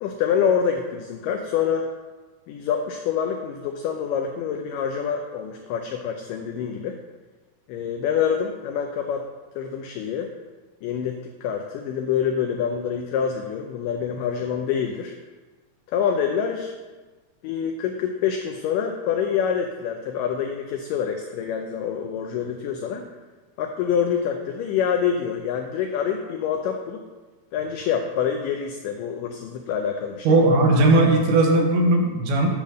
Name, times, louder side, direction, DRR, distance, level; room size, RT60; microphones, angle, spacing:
voice 1, 0.0-1.9 2.5-7.0 7.7-9.3 9.6-10.3 10.8-15.2 15.9-16.8 17.4-23.1 23.6-27.0 27.5-30.5, left 7 dB, 85° left, 4 dB, 1.9 m, -26 dB
voice 2, 30.3-32.5, right 2 dB, 85° right, 1 dB, 3.0 m, -17 dB
10.0 x 3.5 x 6.4 m, 1.3 s
omnidirectional pair, 4.4 m